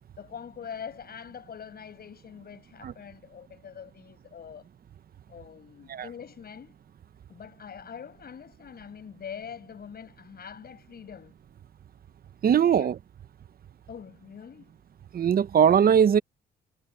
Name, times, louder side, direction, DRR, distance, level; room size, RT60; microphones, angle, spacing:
voice 1, 0.2-4.7 5.3-6.8 7.3-11.3 12.8-12.9 13.9-14.7, left 7 dB, 50° left, 6.2 m, -43 dB
voice 2, 12.4-13.0 15.1-16.2, right 8 dB, 50° right, 0.9 m, -20 dB
cardioid pair, 90°, 20 cm